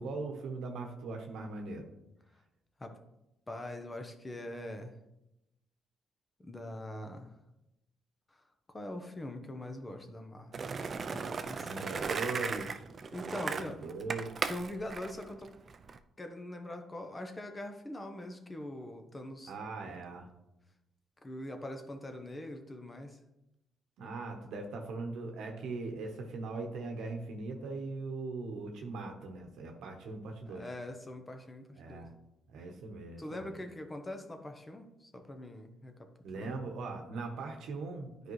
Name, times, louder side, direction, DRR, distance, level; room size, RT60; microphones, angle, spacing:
voice 1, 0.0-1.8 11.6-12.8 13.3-14.3 19.5-20.3 24.0-30.7 31.8-32.1 32.5-33.6 36.2-38.3, right 3 dB, 80° right, 2 dB, 0.9 m, -40 dB
voice 2, 3.5-4.9 6.4-7.3 8.7-10.5 11.1-11.8 13.1-13.8 14.5-15.6 16.2-19.5 19.8-20.1 21.2-23.2 30.5-32.1 33.2-35.9 36.3-36.5, left 1 dB, 20° left, 6 dB, 0.8 m, -43 dB
Skateboard, 10.5-16.0, right 5 dB, 40° right, 0.4 m, -37 dB
9.5 x 4.8 x 3.1 m, 0.89 s
cardioid pair, 90°, 0 cm